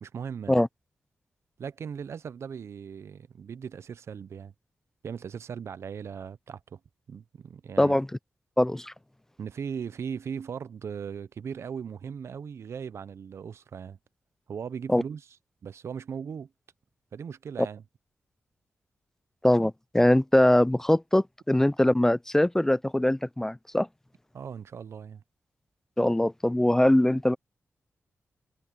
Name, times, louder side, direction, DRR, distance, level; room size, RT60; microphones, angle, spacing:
voice 1, 0.0-0.6 1.6-4.5 5.0-6.8 7.1-8.0 9.4-14.0 14.5-15.3 15.6-16.5 17.1-17.8 24.3-25.2, right 7 dB, 70° right, 0.6 m, -38 dB
voice 2, 7.8-8.1 8.6-8.9 14.9-15.0 19.4-23.9 26.0-27.4, left 1 dB, 10° left, 0.4 m, -22 dB
wide cardioid pair, 110°, 5 cm